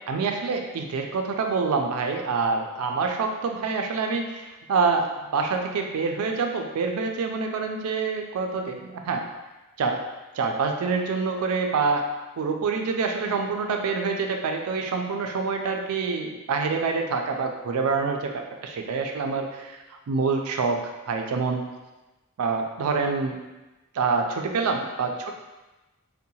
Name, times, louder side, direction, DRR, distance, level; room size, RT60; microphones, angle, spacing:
voice 1, 0.1-9.2 9.8-10.0 10.3-12.1 12.4-19.7 20.1-20.8 21.1-21.6 22.4-23.4 23.9-25.3, right 4 dB, 85° right, 3 dB, 0.4 m, -26 dB
2.7 x 2.1 x 2.7 m, 1.1 s
head